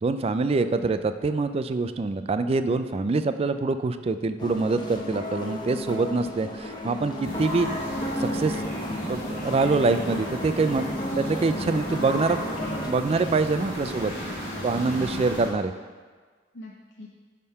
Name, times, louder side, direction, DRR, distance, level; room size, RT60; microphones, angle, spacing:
voice 1, 0.0-7.7 8.2-8.6 9.1-10.8 11.2-12.6 12.9-14.1 14.6-15.7, right 3 dB, 30° right, 10 dB, 0.3 m, -25 dB
sound 1, 4.4-12.9, left 1 dB, 25° left, 0.8 m, -34 dB
sound 2, 7.2-15.5, equal, 45° left, 2.6 m, -34 dB
voice 2, 10.8-11.2 12.9-13.2 13.8-14.2 14.5-15.4 16.5-17.1, left 1 dB, 65° left, -2 dB, 0.7 m, -41 dB
11.0 x 3.7 x 5.6 m, 1.5 s
head